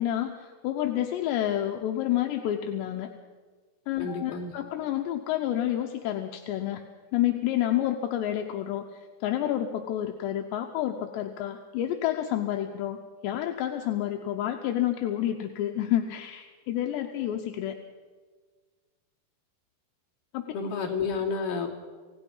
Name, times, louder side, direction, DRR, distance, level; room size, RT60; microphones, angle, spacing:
voice 1, 0.0-3.1 3.9-6.8 7.1-17.8 20.3-20.5, left 12 dB, 80° left, 4 dB, 3.1 m, -29 dB
voice 2, 4.0-4.5 20.5-21.7, left 5 dB, 50° left, -2 dB, 4.2 m, -30 dB
29.0 x 17.0 x 5.5 m, 1.5 s
omnidirectional pair, 5.1 m